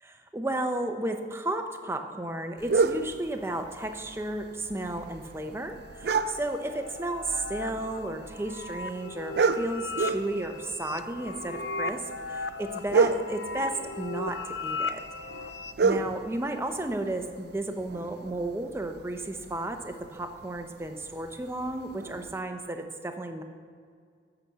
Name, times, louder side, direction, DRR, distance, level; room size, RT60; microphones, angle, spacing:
voice 1, 0.0-15.0 15.8-23.4, right 1 dB, 15° right, 6 dB, 0.7 m, -33 dB
sound 1, 2.6-22.4, right 4 dB, 60° right, 0.4 m, -33 dB
sound 2, 5.4-15.7, left 3 dB, 70° left, 0.5 m, -37 dB
15.0 x 5.9 x 6.7 m, 2.1 s
head